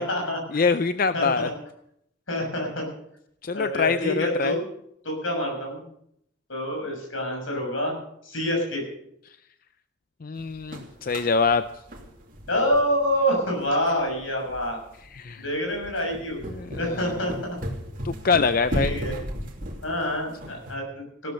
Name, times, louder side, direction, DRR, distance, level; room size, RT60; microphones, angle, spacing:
voice 1, 0.0-0.6 1.1-1.5 2.3-2.9 3.5-4.6 5.0-5.8 6.5-7.9 8.2-8.8 12.5-14.8 15.4-16.4 16.8-17.6 18.7-19.1 19.8-21.3, equal, 80° left, 1 dB, 6.7 m, -27 dB
voice 2, 0.5-1.5 3.4-4.6 10.2-11.6 15.1-15.4 16.5-17.1 18.0-19.0, left 5 dB, 45° left, 12 dB, 0.5 m, -24 dB
sound 1, 10.4-20.7, equal, 45° right, 2.8 m, -36 dB
16.5 x 12.5 x 6.4 m, 0.73 s
head